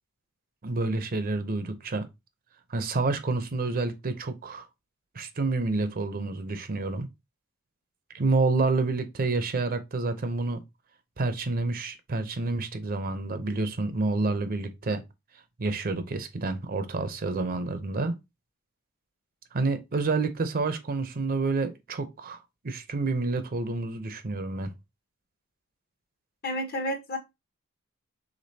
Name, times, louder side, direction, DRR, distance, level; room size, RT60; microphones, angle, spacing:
voice 1, 0.6-2.1 2.7-4.7 5.1-7.1 8.1-10.6 11.2-15.0 15.6-18.1 19.5-24.7, right 3 dB, 45° right, 0.6 m, -28 dB
voice 2, 26.4-27.2, left 1 dB, 45° left, 1.0 m, -30 dB
5.1 x 3.6 x 2.7 m
head